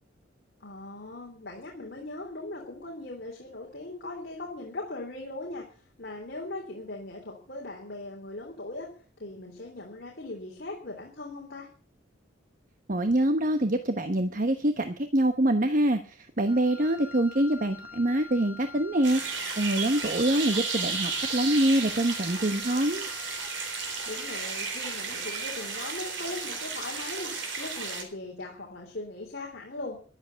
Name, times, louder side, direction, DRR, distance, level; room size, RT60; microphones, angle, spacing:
voice 1, 0.6-5.6 6.0-8.9 9.2-11.7 16.7-16.8 24.0-30.0, left 2 dB, 55° left, -1 dB, 3.4 m, -39 dB
voice 2, 12.9-19.2 19.6-23.1, right 1 dB, 45° right, 8 dB, 1.1 m, -25 dB
Wind instrument woodwind instrument, 16.4-25.3, left 6 dB, 10° right, 7.6 m, -47 dB
sound 1, 19.0-28.0, right 4 dB, 65° right, 3.8 m, -33 dB
13.5 x 11.5 x 6.9 m, 0.40 s
head